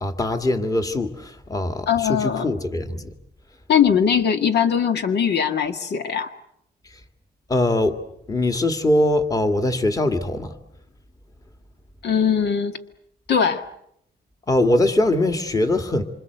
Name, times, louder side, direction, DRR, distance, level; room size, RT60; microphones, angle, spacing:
voice 1, 0.0-3.1 6.9-7.0 7.5-8.0 8.3-10.6 14.5-16.0, left 1 dB, 20° left, 7 dB, 1.8 m, -22 dB
voice 2, 1.9-2.4 3.7-6.3 12.0-12.8 13.3-13.7, left 7 dB, 80° left, 8 dB, 1.9 m, -20 dB
27.0 x 26.0 x 8.0 m, 0.74 s
wide cardioid pair, 165°, 17 cm